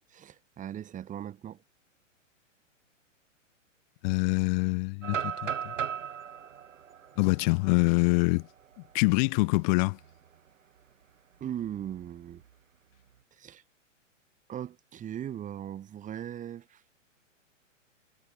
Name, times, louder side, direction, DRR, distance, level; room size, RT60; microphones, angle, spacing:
voice 1, 0.1-1.6 11.4-12.4 13.3-13.6 14.5-16.8, right 10 dB, 20° right, 3.5 m, -39 dB
voice 2, 4.0-5.7 7.2-8.5 8.9-10.0, left 31 dB, 35° left, 1.5 m, -25 dB
sound 1, 5.0-8.9 9.4-9.5 9.9-10.3 11.6-12.4, right 8 dB, 75° right, 5.2 m, -37 dB
hypercardioid pair, 135°, 39 cm